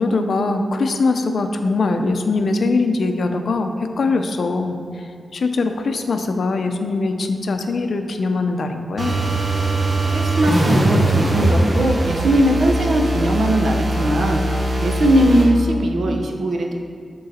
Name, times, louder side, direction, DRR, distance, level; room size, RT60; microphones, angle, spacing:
voice 1, 0.0-4.8 5.3-9.1, left 3 dB, 70° left, 6 dB, 0.5 m, -21 dB
sound 1, 9.0-15.5, right 1 dB, 40° right, 1.0 m, -20 dB
voice 2, 10.1-14.4 14.8-16.8, right 1 dB, 80° right, 2 dB, 0.8 m, -19 dB
10.5 x 3.9 x 4.2 m, 2.2 s
wide cardioid pair, 150°, 0 cm